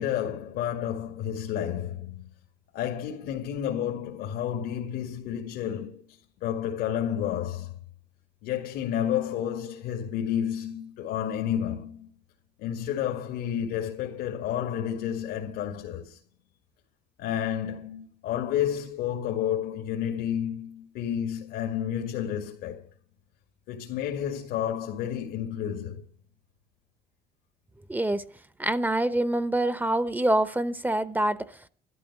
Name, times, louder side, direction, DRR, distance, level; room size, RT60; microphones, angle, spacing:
voice 1, 0.0-2.3 2.7-7.7 8.4-12.1 12.6-16.2 17.2-22.8 23.7-26.0, left 10 dB, 85° left, 2.2 m, -31 dB
voice 2, 27.9-28.2 28.6-31.5, right 1 dB, 10° right, 0.8 m, -25 dB
13.0 x 12.5 x 6.1 m
cardioid pair, 110°, 17 cm